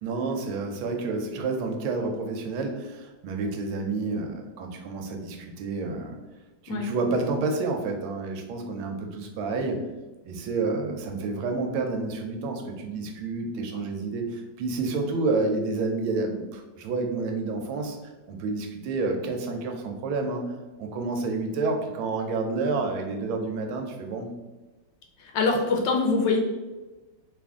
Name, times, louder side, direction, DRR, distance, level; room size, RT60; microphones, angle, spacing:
voice 1, 0.0-6.2 6.6-9.8 10.2-18.0 18.3-20.5 20.8-24.3, right 3 dB, 85° right, 3 dB, 1.4 m, -29 dB
voice 2, 25.2-26.4, left 4 dB, 70° left, 1 dB, 1.2 m, -24 dB
3.5 x 2.5 x 3.5 m, 1.1 s
omnidirectional pair, 2.2 m